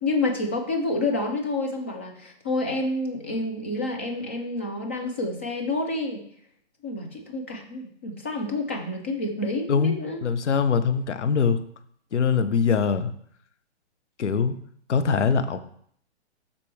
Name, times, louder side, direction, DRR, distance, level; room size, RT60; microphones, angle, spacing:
voice 1, 0.0-6.2 6.8-10.2, left 2 dB, 10° left, 2 dB, 0.3 m, -28 dB
voice 2, 10.2-11.6 12.1-13.1 14.2-14.6 14.9-15.6, left 6 dB, 90° left, 11 dB, 1.0 m, -22 dB
12.5 x 4.2 x 3.3 m, 0.63 s
hypercardioid pair, 155°, 34 cm